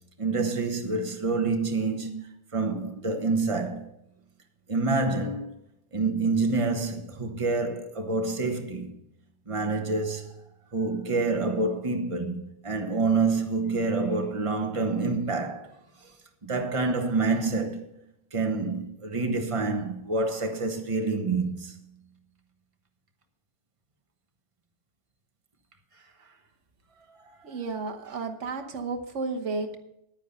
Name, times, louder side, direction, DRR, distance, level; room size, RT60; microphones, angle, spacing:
voice 1, 0.2-2.2 2.5-3.9 4.7-5.5 5.9-8.9 9.5-10.4 10.7-15.7 16.4-17.9 18.3-21.8 27.1-27.2, right 3 dB, 30° right, 1.3 m, -27 dB
voice 2, 27.4-29.8, right 3 dB, 90° right, 1.5 m, -32 dB
10.5 x 9.5 x 5.5 m
omnidirectional pair, 1.2 m